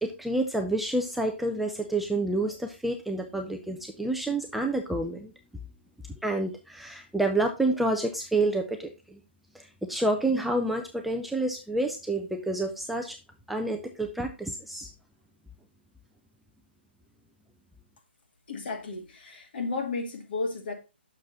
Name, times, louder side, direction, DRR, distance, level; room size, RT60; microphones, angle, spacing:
voice 1, 0.0-5.3 6.2-9.2 9.5-13.2 13.5-14.9, right 2 dB, ahead, 3 dB, 0.4 m, -29 dB
voice 2, 18.5-20.7, left 3 dB, 55° left, 3 dB, 2.5 m, -33 dB
6.4 x 6.3 x 4.1 m, 0.28 s
hypercardioid pair, 160°, 6 cm